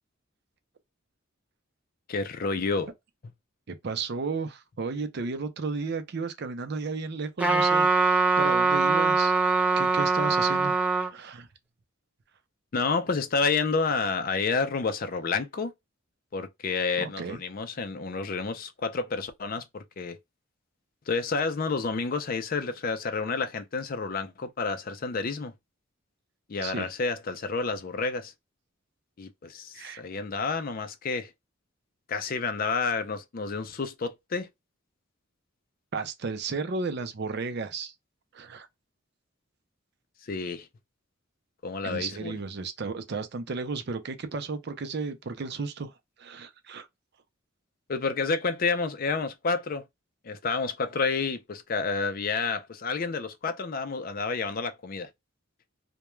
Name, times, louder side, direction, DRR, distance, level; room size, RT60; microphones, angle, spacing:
voice 1, 2.1-2.9 12.7-15.7 16.3-20.2 21.1-25.5 26.5-28.3 29.2-31.3 32.1-34.5 40.2-40.7 41.6-42.4 47.9-49.8 50.2-55.1, left 4 dB, 45° left, 0.4 m, -29 dB
voice 2, 3.7-9.4 9.7-10.8 11.1-11.5 17.0-17.4 26.6-26.9 29.7-30.0 35.9-37.9 38.3-38.7 41.8-45.9 46.2-46.9, right 4 dB, 55° right, 0.5 m, -33 dB
Trumpet, 7.4-11.1, right 4 dB, 10° right, 0.5 m, -22 dB
2.2 x 2.2 x 3.0 m
head